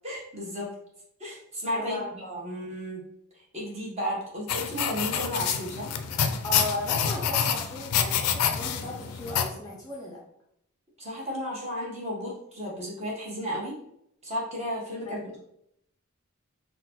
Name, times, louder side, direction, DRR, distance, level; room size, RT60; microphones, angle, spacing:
voice 1, 0.0-0.7 1.2-3.0 3.3-5.9 11.0-13.8 14.2-15.4, equal, 30° right, -5 dB, 0.9 m, -34 dB
voice 2, 1.7-2.5 6.4-10.2 15.0-15.4, left 1 dB, 15° left, -3 dB, 0.4 m, -36 dB
sound 1, 4.5-9.5, left 8 dB, 85° left, 0.3 m, -27 dB
3.7 x 2.1 x 2.8 m, 0.76 s
head